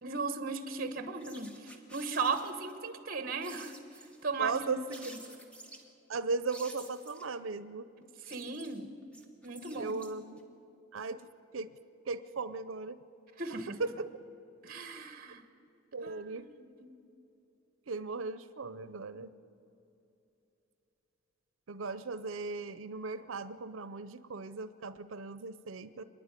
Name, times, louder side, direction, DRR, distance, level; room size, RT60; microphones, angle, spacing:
voice 1, 0.0-5.2 8.0-8.9 9.4-9.9 13.4-13.8 14.6-15.4 16.0-16.9, right 4 dB, 45° right, 8 dB, 1.2 m, -37 dB
sound 1, 1.2-2.7 3.4-4.2 4.9-5.9 6.5-7.3 8.0-10.4, right 1 dB, 5° left, 1.6 m, -51 dB
voice 2, 4.4-5.0 6.1-7.9 9.8-10.4 10.9-11.2 11.5-11.7 12.1-13.0 13.8-14.0 15.9-16.5 17.9-19.3 21.7-26.0, right 4 dB, 75° right, 13 dB, 0.6 m, -37 dB
25.5 x 10.5 x 9.8 m, 2.9 s
head